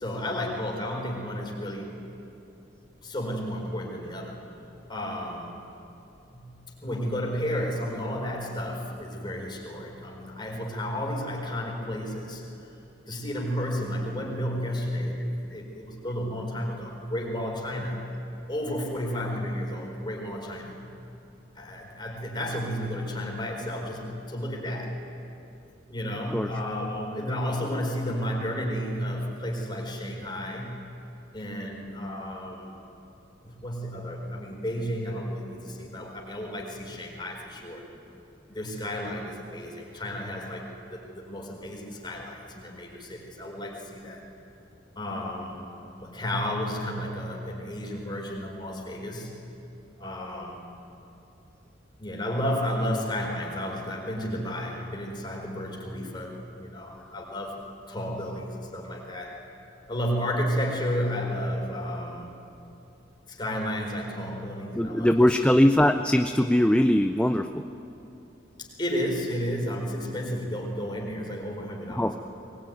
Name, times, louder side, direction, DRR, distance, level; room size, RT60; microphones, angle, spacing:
voice 1, 0.0-1.9 3.0-4.4 4.9-5.6 6.3-12.4 13.1-18.0 18.5-20.9 21.5-24.9 25.9-30.8 31.3-32.8 33.4-37.8 38.5-44.2 45.0-45.7 46.0-49.3 50.0-50.6 52.0-57.6 57.9-59.4 59.9-62.3 63.2-65.4 68.6-72.2, equal, 25° left, -1 dB, 4.6 m, -32 dB
voice 2, 64.8-67.6 72.0-72.1, left 1 dB, 5° left, 7 dB, 0.5 m, -21 dB
22.0 x 20.5 x 9.4 m, 2.8 s
head